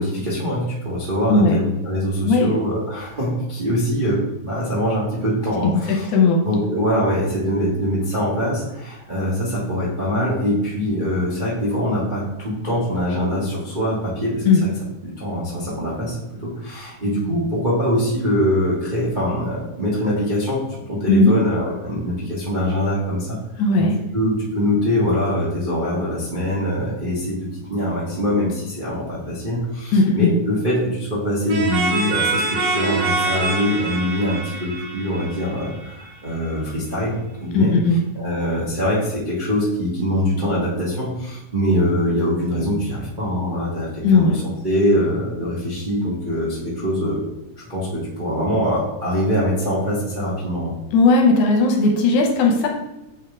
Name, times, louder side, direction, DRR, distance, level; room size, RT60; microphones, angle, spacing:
voice 1, 0.0-6.1 6.4-14.7 15.0-23.6 24.1-37.7 38.1-47.2 47.6-50.7, equal, 65° right, -8 dB, 0.4 m, -23 dB
voice 2, 6.1-6.4 14.5-14.6 21.1-21.3 23.6-23.9 29.9-30.3 37.5-38.0 44.0-44.4 50.9-52.7, left 3 dB, 80° left, 1 dB, 2.3 m, -16 dB
sound 1, 31.5-36.1, right 3 dB, 85° right, 2.9 m, -24 dB
7.5 x 3.5 x 3.6 m, 0.94 s
omnidirectional pair, 3.6 m